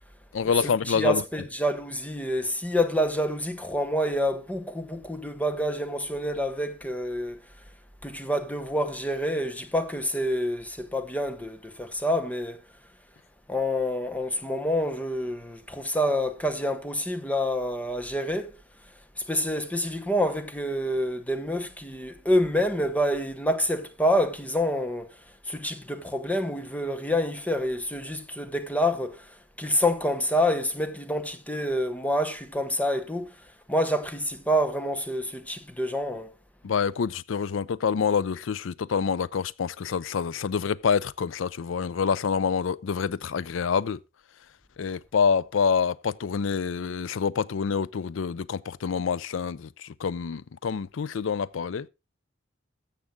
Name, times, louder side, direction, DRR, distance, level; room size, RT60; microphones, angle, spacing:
voice 1, 0.3-1.2 36.6-44.0 44.8-51.9, left 6 dB, 85° left, 0.4 m, -27 dB
voice 2, 0.9-7.4 8.0-12.6 13.5-18.5 19.3-25.1 25.5-33.3 33.7-36.3, equal, 10° left, 0.9 m, -27 dB
13.5 x 7.4 x 3.7 m
head